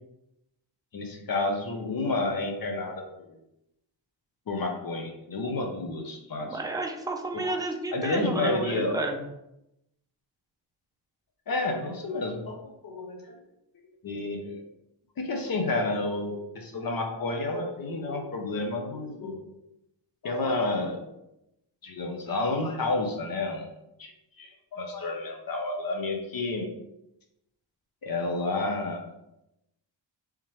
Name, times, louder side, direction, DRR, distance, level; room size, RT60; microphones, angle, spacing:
voice 1, 0.9-3.0 4.5-6.6 7.3-7.6 7.9-9.0 11.5-13.3 14.0-14.6 15.2-19.4 20.2-21.0 21.8-23.7 24.0-24.1 24.4-26.7 28.0-29.0, left 2 dB, 50° left, 2 dB, 0.7 m, -30 dB
voice 2, 6.4-9.2, right 2 dB, 10° right, 3 dB, 0.4 m, -31 dB
3.6 x 2.9 x 3.1 m, 0.86 s
wide cardioid pair, 110°, 45 cm